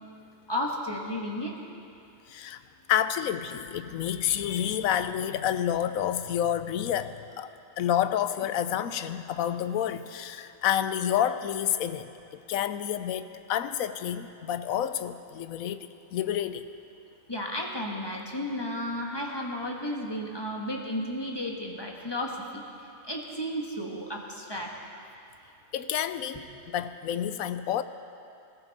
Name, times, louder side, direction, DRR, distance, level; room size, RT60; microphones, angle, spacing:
voice 1, 0.5-1.5 17.3-22.6 23.1-24.7, left 1 dB, 20° left, -1 dB, 1.4 m, -33 dB
voice 2, 2.3-2.6 2.9-7.5 7.8-16.7 25.7-26.4 26.7-27.8, left 10 dB, 85° left, 11 dB, 1.1 m, -29 dB
20.0 x 14.0 x 4.1 m, 2.6 s
omnidirectional pair, 1.4 m